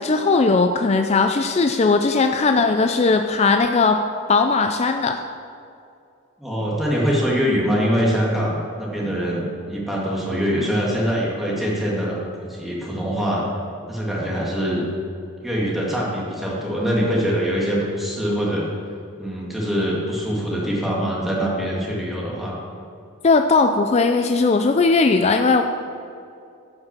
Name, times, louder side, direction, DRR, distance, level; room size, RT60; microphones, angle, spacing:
voice 1, 0.0-4.0 4.3-5.2 23.2-25.6, left 4 dB, 30° left, 6 dB, 0.3 m, -18 dB
voice 2, 6.4-12.2 12.5-13.5 13.9-14.8 15.4-18.6 19.2-22.6, equal, ahead, -5 dB, 2.1 m, -23 dB
11.5 x 6.1 x 7.4 m, 2.5 s
head